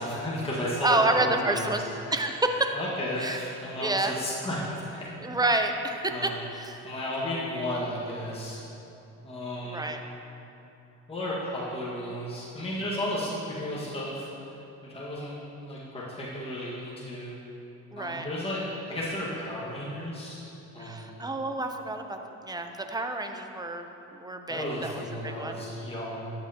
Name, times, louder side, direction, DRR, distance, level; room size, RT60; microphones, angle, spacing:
voice 1, 0.0-1.7 2.7-5.1 6.1-6.4 6.8-8.6 9.2-9.9 11.1-14.3 14.9-15.3 15.6-17.4 17.9-20.5 20.7-21.1 24.5-26.3, left 1 dB, 20° left, -7 dB, 1.7 m, -33 dB
voice 2, 0.8-1.8 2.1-2.7 3.2-3.4 3.8-4.1 5.2-6.8 9.6-10.0 17.9-18.3 20.8-23.9 24.1-25.6, right 2 dB, 15° right, 5 dB, 0.7 m, -29 dB
12.0 x 7.8 x 2.9 m, 2.8 s
cardioid pair, 90°, 30 cm